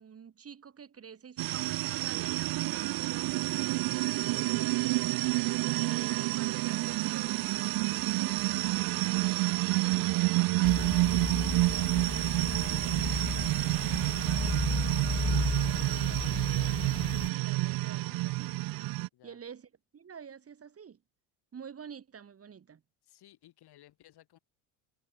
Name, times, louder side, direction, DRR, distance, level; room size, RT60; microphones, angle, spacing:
voice 1, 0.0-5.1 5.6-7.5 7.9-9.3 9.7-18.6 19.2-21.0 21.5-22.8, right 7 dB, 30° right, 2.9 m, -49 dB
sound 1, 1.4-19.1, right 20 dB, 45° right, 0.6 m, -29 dB
sound 2, 10.6-17.3, left 3 dB, 10° left, 1.3 m, -34 dB
voice 2, 23.0-24.4, left 13 dB, 50° left, 7.6 m, -59 dB
supercardioid pair, 105°, 49 cm